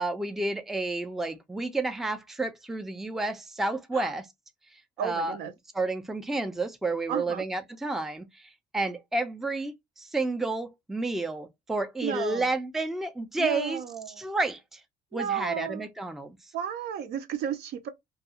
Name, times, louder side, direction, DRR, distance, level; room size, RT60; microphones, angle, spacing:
voice 1, 0.0-4.3 5.0-5.4 5.7-14.8 15.1-16.4, right 2 dB, ahead, 0.4 m, -31 dB
voice 2, 5.0-5.5 7.1-7.4 12.0-12.5 13.4-14.2 15.1-15.9 16.5-17.9, right 9 dB, 75° right, 0.6 m, -32 dB
2.3 x 2.3 x 2.8 m
cardioid pair, 110°, 17 cm